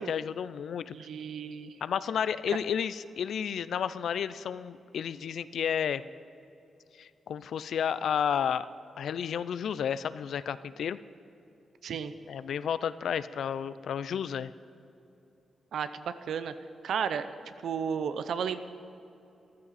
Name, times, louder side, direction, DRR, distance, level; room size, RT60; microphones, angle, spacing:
voice 1, 0.0-0.9 1.8-6.0 7.0-8.7 9.0-11.0 12.3-14.5, left 8 dB, 75° left, 15 dB, 0.4 m, -31 dB
voice 2, 0.9-1.7 11.8-12.1 15.7-16.5 16.8-17.3 17.6-18.6, right 7 dB, 75° right, 11 dB, 0.6 m, -33 dB
14.5 x 12.5 x 4.1 m, 2.8 s
wide cardioid pair, 145°, 0 cm